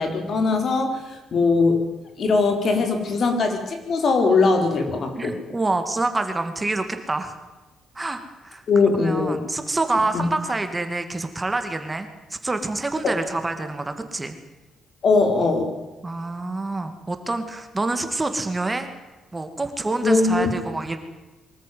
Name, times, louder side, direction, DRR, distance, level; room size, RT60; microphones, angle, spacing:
voice 1, 0.0-1.8 2.2-5.4 8.7-9.4 10.1-10.3 13.0-13.1 15.0-15.7 20.0-20.5, left 3 dB, 55° left, 5 dB, 4.3 m, -20 dB
voice 2, 5.2-7.4 8.0-8.6 9.0-14.4 16.0-18.9 19.3-21.0, right 2 dB, 20° right, 8 dB, 2.2 m, -27 dB
23.5 x 14.0 x 9.5 m, 1.2 s
cardioid pair, 90°, 0 cm